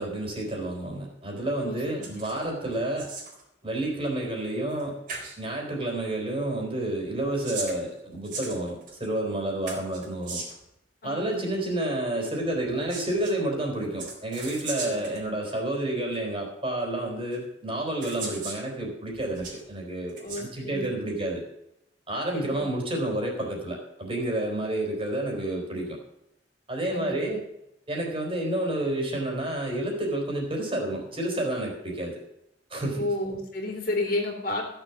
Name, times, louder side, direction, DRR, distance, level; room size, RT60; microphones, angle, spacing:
voice 1, 0.0-3.1 3.6-5.0 5.4-10.4 11.0-21.5 22.1-26.0 26.7-27.5 27.9-32.2 32.7-33.0, right 1 dB, 30° right, 0 dB, 4.0 m, -30 dB
voice 2, 1.6-2.2 11.0-11.7 14.8-15.3 20.2-21.2 22.3-22.6 26.9-27.3 33.0-34.6, left 2 dB, 50° left, 2 dB, 3.0 m, -32 dB
sound 1, 2.0-2.4 2.7-3.4 4.7-4.8 5.1-5.4 7.1-9.1 9.7-10.7 12.6-13.3 14.0-15.2 16.1-16.2 17.3-17.4 18.0-18.6 19.1-19.6 20.1-20.4, right 4 dB, 45° right, 3.9 m, -38 dB
15.5 x 6.9 x 7.1 m, 0.80 s
head